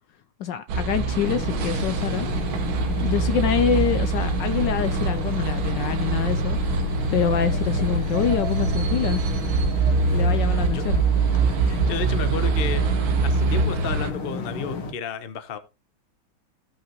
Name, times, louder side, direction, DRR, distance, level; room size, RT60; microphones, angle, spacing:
voice 1, 0.4-2.3 3.0-6.6 7.1-9.2 10.1-11.0, left 8 dB, 70° left, 1.1 m, -25 dB
sound 1, 0.7-14.1, right 4 dB, 75° right, 1.8 m, -24 dB
sound 2, 1.2-14.9, left 3 dB, 90° left, 2.4 m, -33 dB
voice 2, 11.6-15.6, left 7 dB, 45° left, 0.7 m, -32 dB
15.5 x 5.6 x 3.0 m
omnidirectional pair, 2.3 m